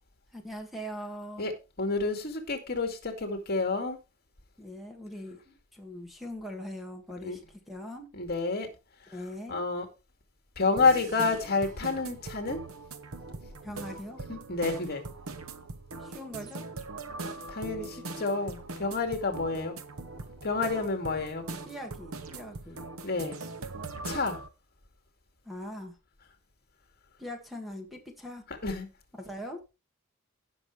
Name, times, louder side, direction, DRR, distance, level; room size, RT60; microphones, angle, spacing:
voice 1, 0.3-1.5 4.6-7.4 7.7-8.1 9.1-9.6 13.6-14.2 16.0-16.7 21.7-22.9 25.4-26.0 27.2-28.5 29.1-29.6, equal, ahead, 1.8 m, -41 dB
voice 2, 1.8-4.0 7.2-7.4 8.1-8.7 9.5-9.9 10.6-12.6 14.3-15.0 17.5-19.8 20.4-21.5 23.0-23.4 24.0-24.4 28.6-28.9, left 3 dB, 50° left, 2.2 m, -29 dB
sound 1, 10.8-24.5, right 3 dB, 90° right, 1.0 m, -41 dB
17.0 x 6.1 x 3.2 m
head